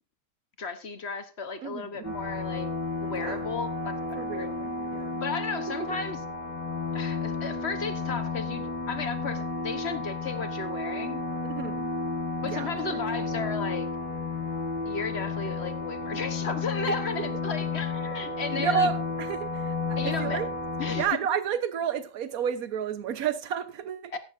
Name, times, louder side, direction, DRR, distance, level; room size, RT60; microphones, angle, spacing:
voice 1, 0.6-2.7 3.0-4.5 5.2-6.2 6.9-11.2 12.4-13.9 14.9-18.9 20.0-20.5 20.8-21.1 24.1-24.2, left 5 dB, 40° left, 1.2 m, -34 dB
voice 2, 1.6-2.1 3.2-3.4 4.1-5.2 5.7-5.9 11.6-11.9 12.4-13.0 16.8-17.3 18.6-20.5 20.9-24.2, right 7 dB, 60° right, 1.4 m, -31 dB
sound 1, 2.0-21.1, left 3 dB, 75° left, 4.7 m, -32 dB
15.0 x 11.0 x 2.6 m
omnidirectional pair, 1.9 m